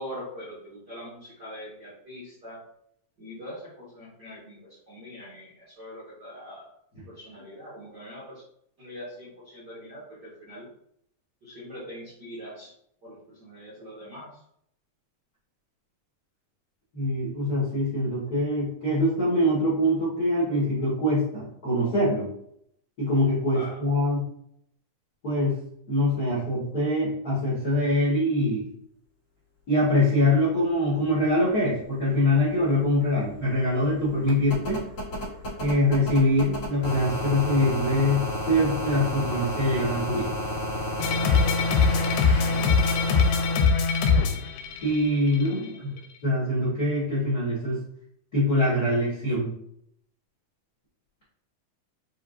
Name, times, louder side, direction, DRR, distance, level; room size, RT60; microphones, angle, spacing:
voice 1, 0.0-2.6 3.2-6.7 7.1-8.4 8.8-10.7 11.4-12.7 13.0-14.4 23.5-23.8 42.3-42.8 45.3-46.0, equal, 90° right, -9 dB, 0.9 m, -42 dB
voice 2, 16.9-22.2 23.0-24.2 25.2-25.5 25.9-28.7 29.7-34.8 35.6-40.3 44.8-45.9 46.2-47.8 48.3-49.5, left 1 dB, 65° left, -9 dB, 0.9 m, -24 dB
sound 1, 32.4-32.5 32.7-43.6 45.0-45.1, equal, 40° left, 2.1 m, -32 dB
sound 2, 41.0-45.5, left 5 dB, 90° left, 2.6 m, -22 dB
6.8 x 2.6 x 2.5 m, 0.71 s
omnidirectional pair, 4.4 m